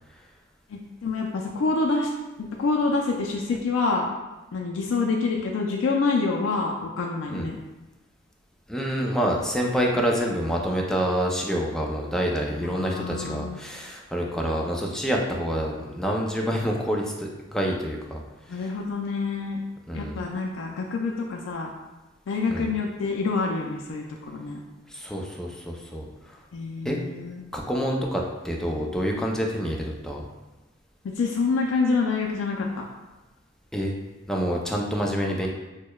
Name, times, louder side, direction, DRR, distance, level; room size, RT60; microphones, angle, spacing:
voice 1, 0.7-2.1 2.4-4.1 4.5-7.6 12.6-13.6 18.5-19.6 19.9-21.7 22.3-24.6 26.5-27.4 31.0-32.8, left 4 dB, 85° left, 0 dB, 0.4 m, -27 dB
voice 2, 8.7-18.2 18.5-18.6 19.9-20.2 22.5-22.7 24.9-26.0 26.8-27.0 27.5-30.2 33.7-33.9 34.3-35.5, equal, 5° left, -1 dB, 0.4 m, -27 dB
6.1 x 2.1 x 2.2 m, 1.1 s
head